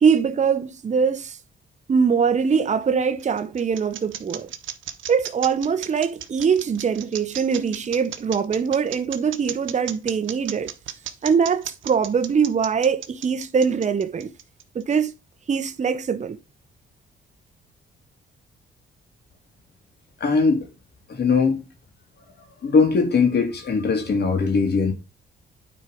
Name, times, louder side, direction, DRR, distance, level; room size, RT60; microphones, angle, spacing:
voice 1, 0.0-1.4 1.9-4.5 5.1-10.7 11.2-14.3 14.7-15.1 15.5-16.4, right 6 dB, 35° right, 0.9 m, -22 dB
sound 1, 2.8-14.8, right 10 dB, 80° right, 1.1 m, -35 dB
voice 2, 20.2-20.7 21.1-21.6 22.6-24.9, left 4 dB, 55° left, 2.7 m, -20 dB
9.0 x 4.5 x 5.0 m
cardioid pair, 90°, 20 cm